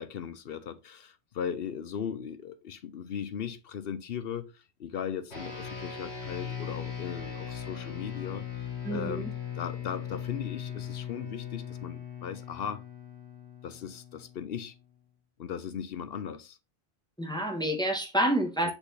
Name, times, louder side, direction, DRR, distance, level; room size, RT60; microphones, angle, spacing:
voice 1, 0.0-9.3 9.6-12.8 13.6-14.7 15.4-16.6 18.6-18.7, left 8 dB, 65° left, 0.8 m, -38 dB
sound 1, 5.3-14.9, left 8 dB, 90° left, 2.7 m, -39 dB
voice 2, 8.8-9.3 17.2-18.7, right 1 dB, 5° left, 1.2 m, -28 dB
5.9 x 4.1 x 3.9 m
omnidirectional pair, 1.1 m